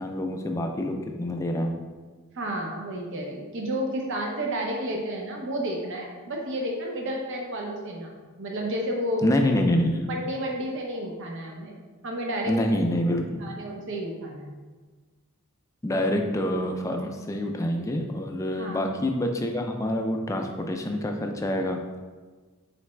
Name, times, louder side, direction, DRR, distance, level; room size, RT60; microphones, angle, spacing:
voice 1, 0.0-1.7 9.2-10.1 12.5-13.5 15.8-21.8, left 1 dB, 15° left, 3 dB, 0.3 m, -26 dB
voice 2, 2.3-9.2 10.1-11.7 12.0-12.5 13.4-14.5 18.6-18.8, equal, 60° right, 0 dB, 0.7 m, -31 dB
3.9 x 3.3 x 3.2 m, 1.4 s
head